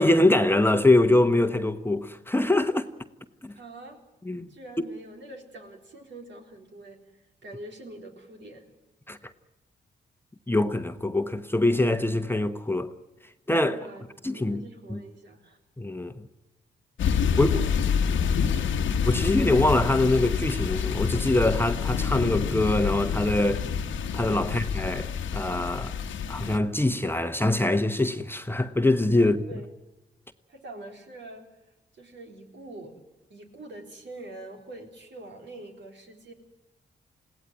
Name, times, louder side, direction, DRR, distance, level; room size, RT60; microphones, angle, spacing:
voice 1, 0.0-2.9 3.4-3.5 4.2-4.5 4.8-4.9 9.1-9.2 10.5-12.9 13.5-13.8 14.2-14.6 14.9-15.0 15.8-16.3 17.4-17.6 19.1-23.7 24.1-26.0 26.3-29.4, left 2 dB, 10° left, 1.1 m, -23 dB
voice 2, 3.5-4.0 4.5-8.7 13.6-15.6 17.2-18.8 24.4-24.6 29.2-29.7 30.5-31.5 31.9-33.0 33.3-36.3, right 2 dB, 65° right, 4.0 m, -45 dB
sound 1, 17.0-26.6, left 6 dB, 80° left, 1.2 m, -27 dB
21.0 x 17.0 x 9.5 m
supercardioid pair, 55°, 20 cm